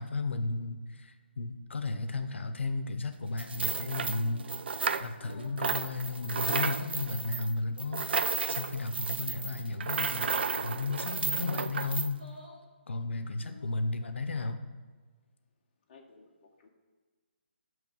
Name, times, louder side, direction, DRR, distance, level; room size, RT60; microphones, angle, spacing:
voice 1, 0.0-4.5 5.0-12.2 12.9-14.6, left 3 dB, 85° left, 8 dB, 0.6 m, -34 dB
sound 1, 3.4-5.3 5.6-12.1, right 5 dB, 65° right, 0.4 m, -33 dB
sound 2, 4.0-4.5 5.1-5.6 6.4-7.0 7.9-8.5 9.3-9.7 11.0-11.5 12.1-12.6 13.3-13.9, left 1 dB, 5° left, 1.5 m, -53 dB
voice 2, 13.2-13.7 15.9-16.7, left 4 dB, 35° left, -2 dB, 0.8 m, -59 dB
7.0 x 3.1 x 6.1 m, 1.4 s
hypercardioid pair, 160°, 6 cm